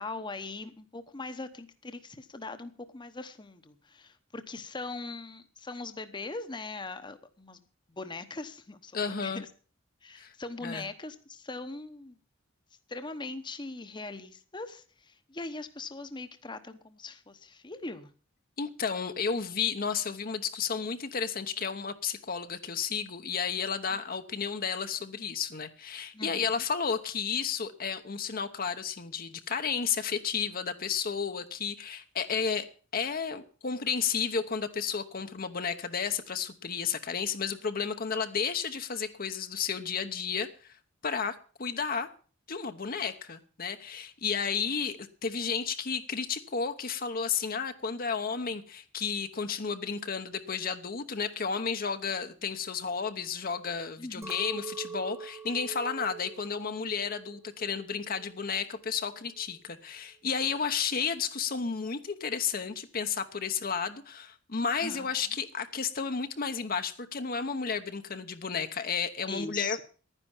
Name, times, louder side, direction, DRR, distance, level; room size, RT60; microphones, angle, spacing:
voice 1, 0.0-9.5 10.0-12.2 12.9-18.1 23.9-24.0 26.1-26.6 54.0-54.6 64.8-65.1 69.3-69.8, left 3 dB, 25° left, 1.0 m, -41 dB
voice 2, 8.9-9.4 10.1-10.3 10.6-10.8 18.6-32.7 32.9-40.7 41.0-42.1 42.5-69.8, left 6 dB, 50° left, 0.9 m, -32 dB
Chink clink, 54.2-58.6 59.0-59.6, right 5 dB, 15° right, 1.0 m, -45 dB
11.0 x 10.0 x 7.2 m
head